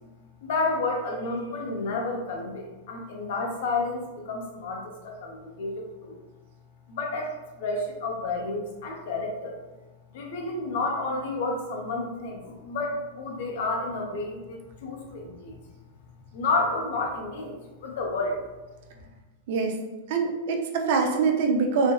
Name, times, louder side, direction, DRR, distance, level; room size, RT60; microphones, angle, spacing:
voice 1, 0.4-6.2 6.9-9.6 10.1-15.6 16.2-18.4, left 3 dB, 65° left, 1 dB, 0.6 m, -30 dB
voice 2, 19.5-19.8 20.1-21.9, right 4 dB, 65° right, 3 dB, 0.4 m, -24 dB
3.3 x 2.1 x 2.2 m, 1.1 s
hypercardioid pair, 125°, 0 cm